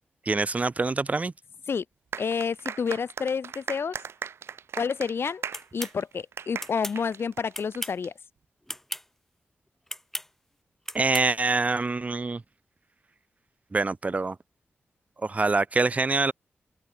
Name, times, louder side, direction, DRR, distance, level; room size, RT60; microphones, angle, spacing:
voice 1, 0.3-1.3 10.9-12.4 13.7-14.4 15.2-16.3, right 3 dB, 35° right, 0.8 m, -25 dB
sound 1, 2.1-8.1, right 7 dB, 80° right, 0.5 m, -38 dB
voice 2, 2.2-3.9 4.8-5.4 5.7-8.1, left 6 dB, 70° left, 1.5 m, -29 dB
sound 2, 5.5-6.0 6.6-7.0 7.5-8.0 8.7-9.0 9.9-10.3 10.9-11.3, left 1 dB, 5° left, 0.5 m, -35 dB
open air
cardioid pair, 75°, 4 cm